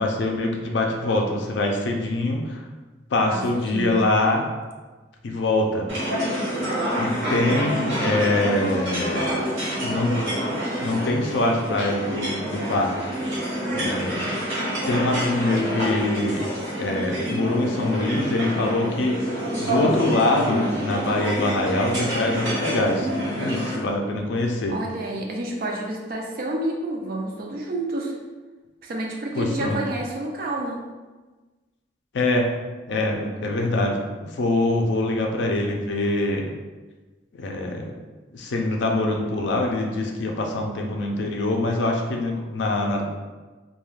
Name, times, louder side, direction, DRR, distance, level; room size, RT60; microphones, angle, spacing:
voice 1, 0.0-2.6 3.1-4.4 5.2-5.9 7.0-9.4 9.8-10.2 10.8-12.9 13.7-14.3 14.9-16.4 16.8-24.8 29.4-29.8 32.1-32.5 32.9-36.5 37.3-37.9 38.3-43.2, left 2 dB, 65° left, 2 dB, 0.4 m, -24 dB
voice 2, 3.3-4.1 24.7-28.2 28.8-30.9, right 1 dB, 50° right, 0 dB, 0.4 m, -29 dB
sound 1, 5.9-23.7, equal, 85° right, 1.1 m, -27 dB
2.3 x 2.2 x 3.2 m, 1.3 s
head